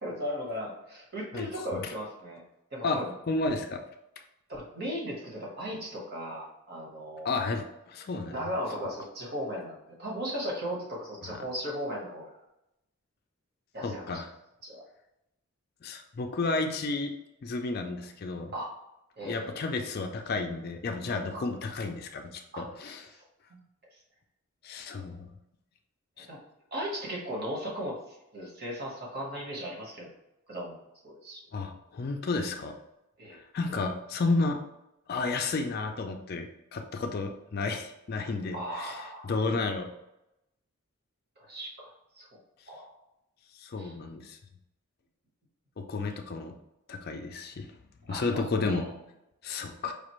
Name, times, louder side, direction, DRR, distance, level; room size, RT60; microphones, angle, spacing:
voice 1, 0.0-2.4 2.7-3.1 4.5-7.5 8.3-12.3 13.7-14.1 14.6-14.8 18.5-18.7 19.2-19.5 22.5-22.6 26.3-26.4 26.7-30.1 30.5-30.8 31.0-31.4 33.2-33.4 38.5-39.4 41.4-42.4 42.7-42.9 43.8-43.9 48.1-48.9 49.5-49.6, equal, 45° right, -3 dB, 1.2 m, -37 dB
voice 2, 1.3-1.9 2.8-3.0 3.3-3.8 7.2-8.5 11.2-11.4 13.8-14.3 15.8-17.1 17.4-18.5 19.2-23.1 24.6-25.3 26.2-26.3 31.5-32.7 33.3-34.6 35.1-39.9 43.5-44.4 45.8-46.5 46.9-47.7 48.1-48.9 49.4-49.9, left 3 dB, 45° left, 4 dB, 0.3 m, -32 dB
5.0 x 2.5 x 3.0 m, 0.87 s
head